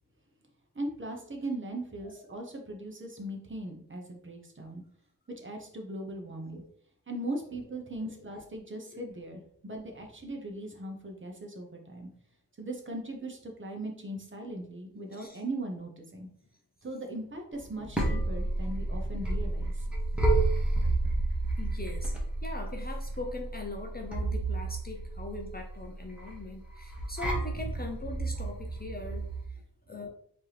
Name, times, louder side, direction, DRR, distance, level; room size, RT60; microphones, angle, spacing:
voice 1, 0.7-4.8 5.4-6.6 7.1-12.1 12.6-16.3 16.8-19.9, right 1 dB, 30° right, 2 dB, 1.0 m, -39 dB
voice 2, 8.1-8.4 8.9-9.0 15.1-15.4 20.5-21.0 21.6-30.1, left 2 dB, 25° left, 1 dB, 0.6 m, -41 dB
sound 1, 17.6-29.4, right 2 dB, 5° right, 1.2 m, -31 dB
4.4 x 2.9 x 3.3 m, 0.65 s
wide cardioid pair, 90°, 39 cm